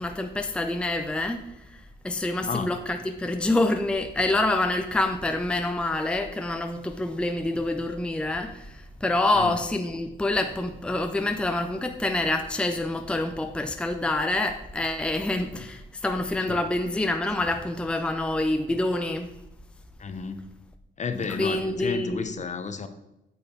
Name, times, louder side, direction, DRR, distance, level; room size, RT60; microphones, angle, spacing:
voice 1, 0.0-1.5 2.0-19.3 21.4-22.3, left 2 dB, 5° left, 6 dB, 0.6 m, -27 dB
voice 2, 20.0-20.4 21.0-22.9, left 5 dB, 35° left, 9 dB, 0.9 m, -32 dB
8.8 x 6.3 x 4.6 m, 0.92 s
cardioid pair, 90°, 20 cm